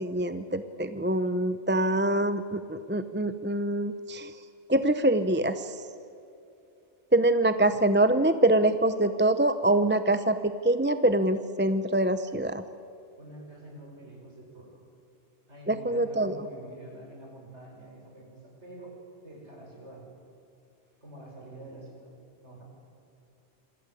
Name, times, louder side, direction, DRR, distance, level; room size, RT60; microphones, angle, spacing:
voice 1, 0.0-4.3 4.7-5.7 7.1-12.6 15.7-16.4, right 1 dB, 10° right, 11 dB, 0.7 m, -25 dB
voice 2, 13.2-14.8 15.5-19.0 19.2-20.0 21.0-22.1 22.4-22.6, right 1 dB, 75° right, -1 dB, 7.7 m, -47 dB
26.5 x 26.5 x 8.4 m, 2.7 s
omnidirectional pair, 1.2 m